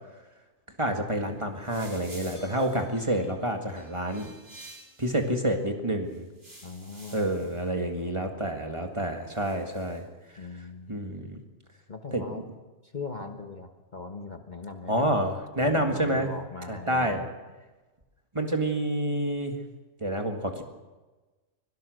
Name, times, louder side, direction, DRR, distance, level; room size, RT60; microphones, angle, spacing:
voice 1, 0.8-4.3 5.0-6.3 7.1-10.0 10.9-11.4 12.1-12.4 14.9-16.3 16.7-17.2 18.3-19.5 20.0-20.6, right 1 dB, 20° right, 4 dB, 1.9 m, -28 dB
sound 1, 1.2-5.3 6.1-7.7 9.3-10.0, right 1 dB, 60° right, 4.7 m, -50 dB
voice 2, 6.6-7.3 7.7-8.5 10.4-11.4 11.9-12.4 12.8-15.1 15.6-17.3, left 4 dB, 35° left, 5 dB, 1.3 m, -41 dB
24.0 x 17.5 x 6.5 m, 1.2 s
omnidirectional pair, 1.4 m